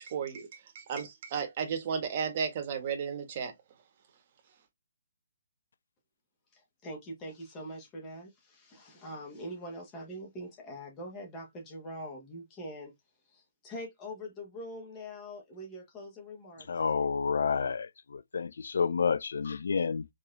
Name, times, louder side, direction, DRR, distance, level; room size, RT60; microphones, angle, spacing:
voice 1, 0.0-3.5, right 6 dB, 40° right, 1.3 m, -34 dB
voice 2, 6.5-12.9 13.3-16.7, equal, 20° left, 1.4 m, -43 dB
voice 3, 16.7-20.1, left 5 dB, 65° left, 0.4 m, -30 dB
4.5 x 3.1 x 2.6 m
figure-of-eight pair, 135°, 0 cm